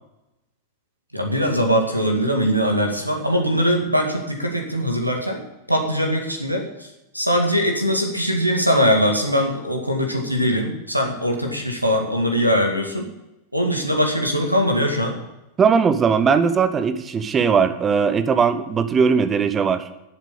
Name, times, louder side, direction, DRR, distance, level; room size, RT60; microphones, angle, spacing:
voice 1, 1.1-6.9 7.1-13.1 13.5-15.2, equal, 90° right, 3 dB, 2.1 m, -21 dB
voice 2, 15.6-19.8, right 6 dB, 20° right, 11 dB, 1.1 m, -19 dB
11.5 x 8.0 x 8.3 m, 0.95 s
figure-of-eight pair, 90°, 0 cm